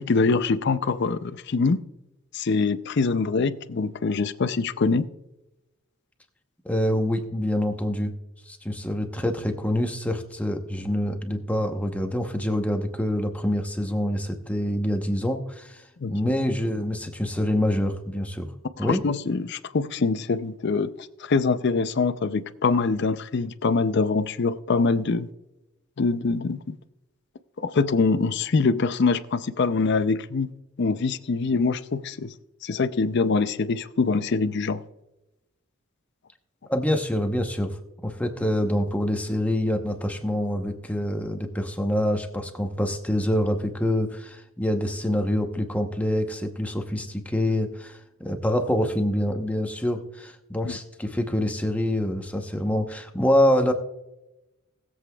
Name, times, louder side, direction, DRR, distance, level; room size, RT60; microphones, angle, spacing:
voice 1, 0.0-1.8 2.3-5.1 16.0-16.1 18.8-20.9 21.2-25.3 26.0-26.8 27.6-30.5 30.8-32.3 32.6-34.8 50.7-50.8, left 4 dB, 50° left, 0.5 m, -24 dB
voice 2, 6.6-8.1 8.5-18.5 18.8-19.0 36.7-37.8 38.0-53.7, left 1 dB, 5° left, 0.9 m, -26 dB
20.0 x 7.8 x 2.3 m
head